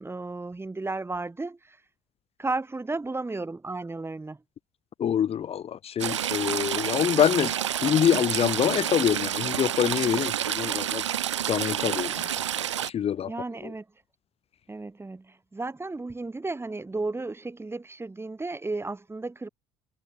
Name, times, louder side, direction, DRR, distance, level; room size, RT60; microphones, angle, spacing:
voice 1, 0.0-1.8 2.4-4.4 13.3-13.8 14.7-19.5, right 3 dB, 15° right, 4.4 m, -33 dB
voice 2, 5.0-7.5 7.8-11.0 11.5-12.4 12.8-13.3 13.6-13.7, left 9 dB, 40° left, 1.5 m, -25 dB
Stream / Trickle dribble, 6.0-12.9, right 10 dB, 80° right, 0.9 m, -29 dB
figure-of-eight pair, 60°, 15 cm